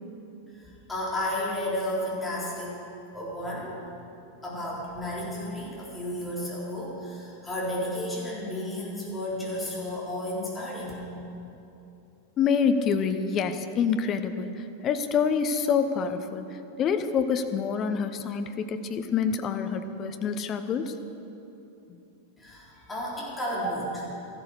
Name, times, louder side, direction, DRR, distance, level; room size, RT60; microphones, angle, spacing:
voice 1, 0.9-2.8 3.1-3.9 4.4-11.1 22.4-24.1, left 1 dB, 10° left, -7 dB, 4.0 m, -32 dB
voice 2, 12.4-14.5 14.8-16.4 16.8-20.9, left 6 dB, 30° left, 8 dB, 0.9 m, -26 dB
14.0 x 12.5 x 6.7 m, 2.8 s
figure-of-eight pair, 90°, 0 cm